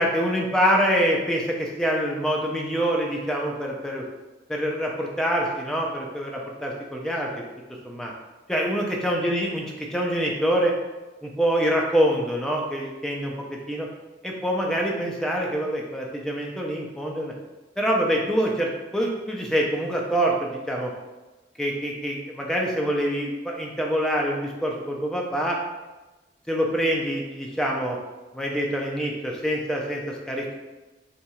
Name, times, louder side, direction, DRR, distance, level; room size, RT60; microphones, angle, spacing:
voice 1, 0.0-4.0 4.5-7.3 7.8-8.1 8.5-9.6 9.9-10.7 11.2-13.3 13.7-13.9 14.2-17.3 17.8-20.9 21.6-25.6 26.5-28.0 28.3-30.6, equal, 5° left, -1 dB, 0.4 m, -25 dB
2.8 x 2.3 x 4.1 m, 1.1 s
head